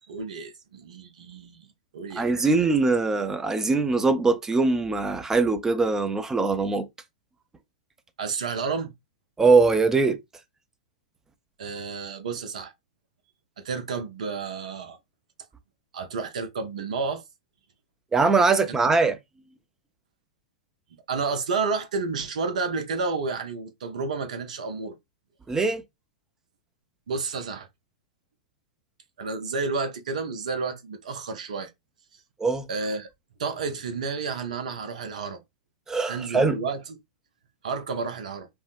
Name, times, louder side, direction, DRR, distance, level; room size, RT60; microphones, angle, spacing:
voice 1, 0.1-1.7 1.9-2.6 8.2-8.9 11.6-12.7 13.6-15.0 15.9-17.2 21.1-25.0 27.1-27.7 29.2-31.7 32.7-33.1 33.4-35.4 36.1-36.8 37.6-38.5, right 4 dB, 70° right, 0.8 m, -31 dB
voice 2, 2.2-6.9 9.4-10.2 18.1-19.2 25.5-25.8 32.4-32.7 35.9-36.6, right 4 dB, 10° right, 0.5 m, -22 dB
3.5 x 2.1 x 2.5 m
hypercardioid pair, 110°, 4 cm